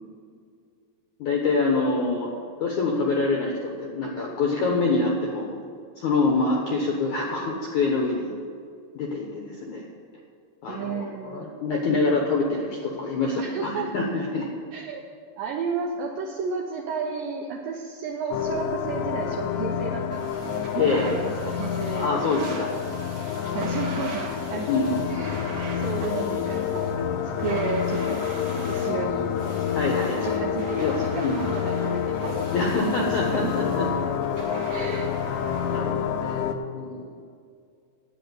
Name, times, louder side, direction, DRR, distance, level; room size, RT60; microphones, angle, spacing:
voice 1, 1.2-2.3 2.6-5.6 6.0-8.3 8.9-9.9 10.6-14.5 20.7-21.1 22.0-22.7 24.7-25.5 29.7-30.4 30.8-30.9 31.2-31.4 32.5-33.9 35.6-36.4 36.7-37.2, left 3 dB, 70° left, 0 dB, 1.8 m, -26 dB
voice 2, 10.7-11.5 13.4-14.1 14.7-15.0 15.4-22.4 23.5-24.7 25.1-25.5 25.7-28.2 28.7-29.3 30.2-33.0 33.3-33.5 34.7-35.3, right 5 dB, 80° right, 1 dB, 2.1 m, -33 dB
sound 1, 18.3-36.6, left 8 dB, 85° left, 2.9 m, -28 dB
sound 2, 20.1-35.8, right 3 dB, 60° right, 1.8 m, -40 dB
10.0 x 9.0 x 8.0 m, 2.3 s
omnidirectional pair, 5.1 m